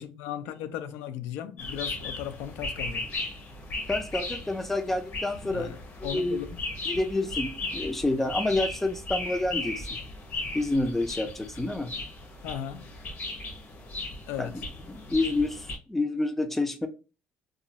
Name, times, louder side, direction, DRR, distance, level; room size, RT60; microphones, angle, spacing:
voice 1, 0.0-3.1 5.4-6.6 12.4-12.9 14.3-14.6, left 10 dB, 90° left, 0.4 m, -37 dB
sound 1, 1.6-15.8, left 2 dB, 45° left, 0.9 m, -36 dB
voice 2, 3.9-5.7 6.0-6.4 6.9-9.9 10.5-11.9 14.4-14.5 14.9-16.9, left 2 dB, 5° left, 0.3 m, -28 dB
2.4 x 2.0 x 3.9 m
cardioid pair, 145°, 4 cm